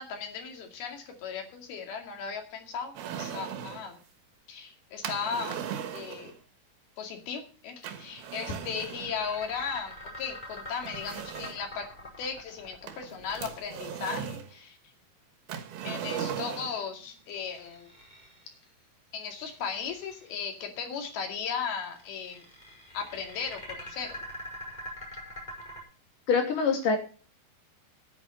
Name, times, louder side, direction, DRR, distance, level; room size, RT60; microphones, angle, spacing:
voice 1, 0.0-4.0 4.5-5.6 5.9-6.3 7.0-11.9 12.2-14.8 15.8-17.9 19.1-22.4 22.9-24.2, left 6 dB, 85° left, 3 dB, 4.3 m, -36 dB
sound 1, 3.0-3.9 5.0-6.4 7.8-9.2 10.2-10.3 10.8-11.7 12.9-14.5 15.5-16.8, right 8 dB, 85° right, 3.3 m, -38 dB
sound 2, 8.0-14.3 17.1-18.6 19.2-20.5 21.8-25.8, equal, 10° left, 5.2 m, -45 dB
voice 2, 26.3-27.0, left 5 dB, 60° left, 3 dB, 4.1 m, -24 dB
11.0 x 9.4 x 6.7 m, 0.38 s
omnidirectional pair, 4.3 m